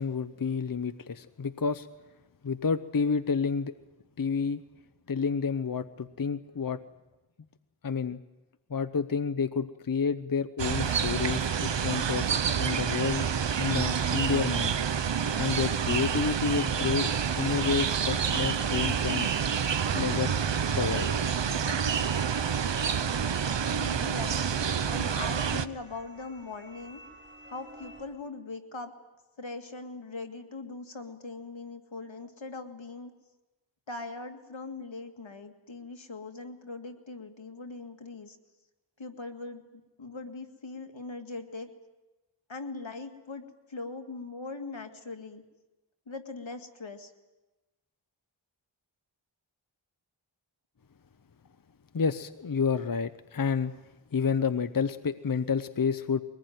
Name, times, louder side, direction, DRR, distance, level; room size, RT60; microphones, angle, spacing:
voice 1, 0.0-1.9 2.4-3.7 4.2-4.6 5.1-6.8 7.8-8.2 8.7-13.3 13.6-14.7 15.4-17.1 17.4-19.3 19.9-20.3 20.8-21.1 51.9-53.7 54.1-56.2, left 5 dB, 45° left, 11 dB, 0.8 m, -29 dB
sound 1, 10.6-25.7, right 7 dB, 65° right, 0.9 m, -28 dB
sound 2, 17.4-28.1, equal, 25° right, 6.0 m, -49 dB
voice 2, 23.7-24.4 24.9-27.0 27.5-28.9 29.4-33.1 33.9-38.4 39.0-41.7 42.5-43.4 43.7-45.4 46.1-47.1, left 3 dB, 75° left, 5 dB, 2.2 m, -41 dB
23.0 x 19.5 x 9.4 m, 1.1 s
wide cardioid pair, 55°, 47 cm